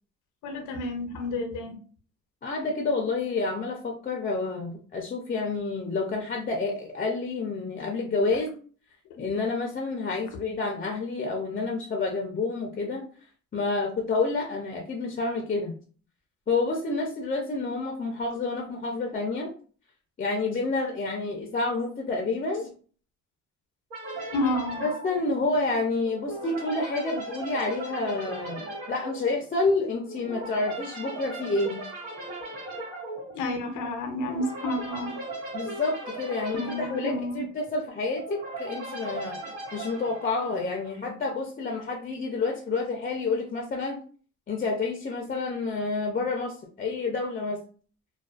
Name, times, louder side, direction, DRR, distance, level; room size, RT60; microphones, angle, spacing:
voice 1, 0.4-1.7 24.3-24.8 33.3-35.1 36.5-37.4, left 2 dB, 85° left, 5 dB, 0.6 m, -30 dB
voice 2, 2.4-8.5 9.2-13.1 13.5-15.7 16.5-19.5 20.2-22.7 24.8-31.8 35.5-44.0 44.5-47.6, left 3 dB, 30° left, 1 dB, 0.5 m, -29 dB
sound 1, 23.9-41.1, right 2 dB, 85° right, 1.4 m, -38 dB
2.4 x 2.2 x 2.3 m, 0.42 s
cardioid pair, 90°, 30 cm